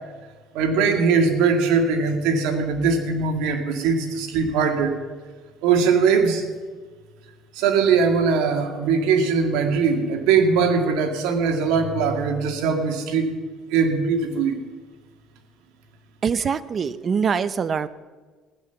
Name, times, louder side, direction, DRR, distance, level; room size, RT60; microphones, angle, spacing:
voice 1, 0.5-5.0 5.6-6.4 7.5-13.3 13.7-14.6, right 5 dB, 80° right, 5 dB, 2.1 m, -21 dB
voice 2, 16.2-17.9, right 6 dB, 35° right, 16 dB, 0.6 m, -23 dB
16.0 x 11.0 x 7.0 m, 1.4 s
cardioid pair, 115°, 0 cm